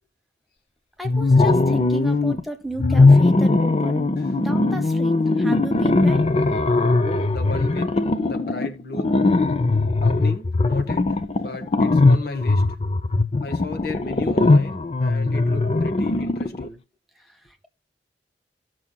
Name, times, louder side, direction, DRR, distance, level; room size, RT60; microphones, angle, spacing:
sound 1, 1.0-2.4 2.8-16.7, left 3 dB, 35° left, 0.6 m, -19 dB
voice 1, 1.0-6.2, right 1 dB, ahead, 1.0 m, -33 dB
voice 2, 7.0-7.9 8.3-9.2 10.0-12.6 13.4-16.8, left 2 dB, 60° left, 1.3 m, -35 dB
15.5 x 6.2 x 2.2 m
head